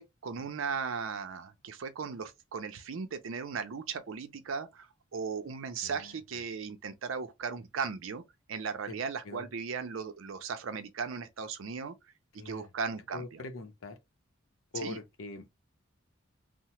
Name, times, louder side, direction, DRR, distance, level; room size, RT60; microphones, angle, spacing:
voice 1, 0.0-8.2 8.5-11.9 12.4-13.4 14.8-15.0, right 5 dB, 75° right, 0.5 m, -37 dB
voice 2, 5.8-6.2 8.9-9.0 9.2-9.5 12.4-12.7 13.1-14.0 14.7-15.6, left 3 dB, 90° left, 0.6 m, -43 dB
2.8 x 2.1 x 3.0 m
head